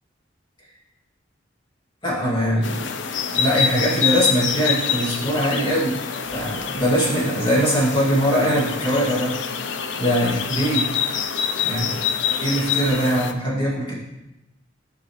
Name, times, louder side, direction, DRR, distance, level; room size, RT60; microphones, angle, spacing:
voice 1, 2.0-2.9 3.3-6.0 6.3-9.4 10.0-10.9 11.6-12.0 12.4-13.9, equal, 25° left, -6 dB, 2.3 m, -21 dB
sound 1, 2.6-13.3, left 7 dB, 70° left, 0.5 m, -26 dB
10.5 x 5.7 x 3.1 m, 0.96 s
head